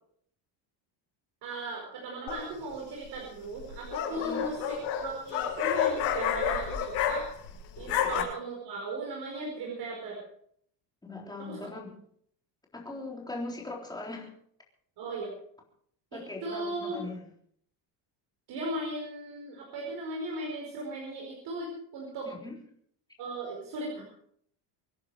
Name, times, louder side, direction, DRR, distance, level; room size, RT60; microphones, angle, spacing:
voice 1, 1.4-7.2 7.8-10.2 11.4-11.6 15.0-15.3 16.1-17.0 18.5-22.3 23.2-24.0, right 2 dB, 60° right, -1 dB, 4.9 m, -37 dB
sound 1, 2.3-2.7 3.6-7.5 7.8-8.2, left 8 dB, 85° left, 5.9 m, -30 dB
voice 2, 4.1-4.5 8.0-8.3 11.0-11.9 12.7-14.3 16.1-17.2 22.3-22.6, left 2 dB, 10° left, -1 dB, 3.8 m, -40 dB
25.0 x 10.0 x 4.9 m, 0.64 s
cardioid pair, 160°, 44 cm